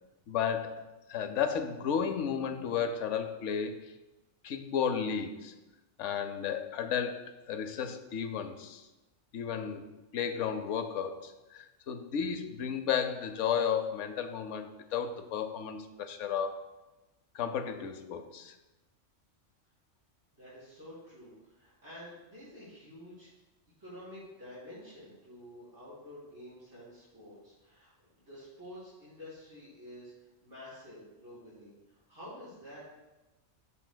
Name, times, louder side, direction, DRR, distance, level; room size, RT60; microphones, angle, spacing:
voice 1, 0.3-3.9 4.4-5.5 6.0-8.9 9.3-9.9 10.1-16.6 17.3-18.5, left 7 dB, 75° left, 9 dB, 1.0 m, -33 dB
voice 2, 20.3-23.3 23.8-30.1 30.4-32.9, left 1 dB, 80° right, -11 dB, 3.5 m, -49 dB
14.0 x 5.4 x 2.2 m, 1.1 s
omnidirectional pair, 1.3 m